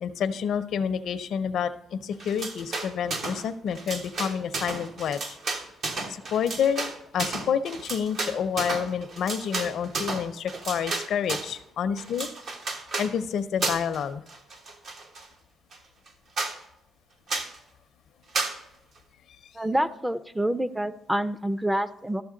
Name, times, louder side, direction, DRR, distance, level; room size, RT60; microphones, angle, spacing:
voice 1, 0.0-5.4 6.1-12.3 13.0-14.2, left 7 dB, 70° left, 11 dB, 0.6 m, -29 dB
sound 1, 2.2-3.5 3.7-11.6 12.0-13.1 13.6-14.0 14.3-15.3 15.7-15.8 16.1-16.2 16.4-16.6 17.3-17.6 18.3-18.6, right 3 dB, 65° right, 1.3 m, -32 dB
voice 2, 19.5-22.2, right 1 dB, 5° right, 13 dB, 0.5 m, -27 dB
13.0 x 6.9 x 3.8 m, 0.83 s
cardioid pair, 90°, 0 cm